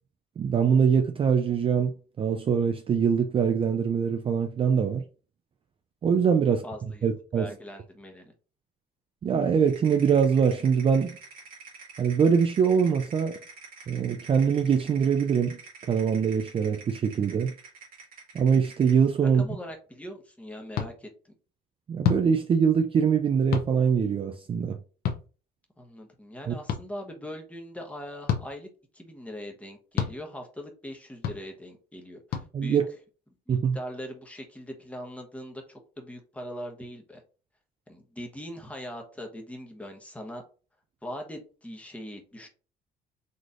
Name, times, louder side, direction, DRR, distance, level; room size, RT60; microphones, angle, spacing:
voice 1, 0.4-5.0 6.0-6.6 7.0-7.5 9.2-11.2 12.0-13.4 13.9-15.6 15.9-17.5 18.3-19.4 21.9-24.8 26.5-26.6 32.5-32.8 33.5-33.8, right 6 dB, 30° right, 0.4 m, -23 dB
voice 2, 6.4-7.1 7.4-8.3 19.4-21.1 25.8-28.7 28.9-32.8 33.5-37.2 37.9-40.4 41.0-42.5, equal, 10° left, 1.0 m, -41 dB
sound 1, 9.7-19.1, right 4 dB, 55° right, 1.8 m, -48 dB
sound 2, 20.7-20.9 22.0-22.2 23.5-23.7 25.0-25.2 26.7-26.8 28.3-28.5 30.0-30.1 31.2-31.4 32.3-32.5, left 8 dB, 65° left, 0.7 m, -27 dB
4.1 x 3.2 x 2.5 m
cardioid pair, 110°, 17 cm